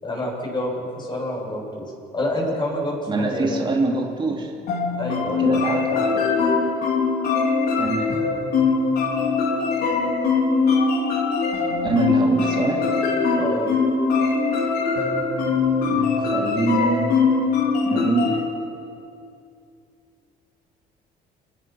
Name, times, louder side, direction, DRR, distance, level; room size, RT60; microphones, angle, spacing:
voice 1, 0.0-3.6 5.0-6.1 13.3-13.8, left 1 dB, 25° left, -1 dB, 7.7 m, -28 dB
voice 2, 3.1-4.5 5.4-5.9 7.8-8.2 11.8-12.9 15.8-17.1 17.8-18.5, right 3 dB, 30° right, 0 dB, 2.9 m, -24 dB
sound 1, 4.7-18.4, left 4 dB, 65° left, 4.3 m, -21 dB
29.0 x 20.0 x 6.0 m, 2.5 s
cardioid pair, 110°, 17 cm